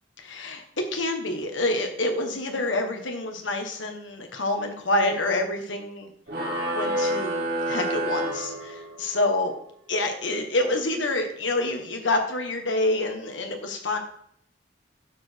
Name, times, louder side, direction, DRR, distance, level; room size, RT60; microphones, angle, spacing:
voice 1, 0.2-0.6 0.9-6.1 6.7-9.5 9.9-14.0, left 2 dB, 85° left, 4 dB, 1.5 m, -27 dB
sound 1, 6.3-9.2, right 1 dB, 55° right, 2.5 m, -28 dB
11.5 x 5.0 x 4.6 m, 0.67 s
head